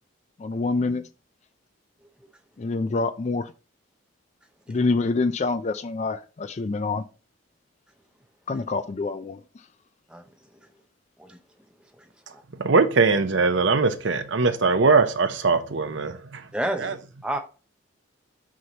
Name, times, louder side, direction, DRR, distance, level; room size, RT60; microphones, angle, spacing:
voice 1, 0.4-1.0 2.6-3.5 4.7-7.0 8.5-9.4, left 3 dB, 35° left, 0.4 m, -26 dB
voice 2, 10.1-10.7 11.2-11.4 12.0-12.4 16.5-17.0 17.2-17.4, right 1 dB, 5° right, 0.7 m, -32 dB
voice 3, 12.6-16.4 16.8-16.9, right 4 dB, 60° right, 0.7 m, -21 dB
6.2 x 5.7 x 2.9 m
head